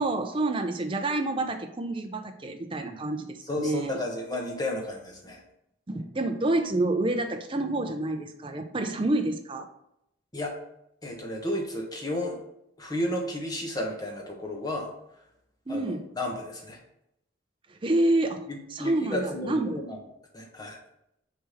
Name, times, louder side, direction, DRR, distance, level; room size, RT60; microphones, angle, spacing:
voice 1, 0.0-3.9 5.9-9.7 15.7-16.1 17.7-18.4 18.7-19.8, right 2 dB, 25° right, 5 dB, 0.5 m, -28 dB
voice 2, 3.4-5.4 10.3-10.5 11.0-12.4 12.8-14.9 15.7-16.8 18.5-20.0 20.3-20.8, left 1 dB, 20° left, -1 dB, 1.2 m, -33 dB
6.6 x 3.4 x 5.7 m, 0.80 s
head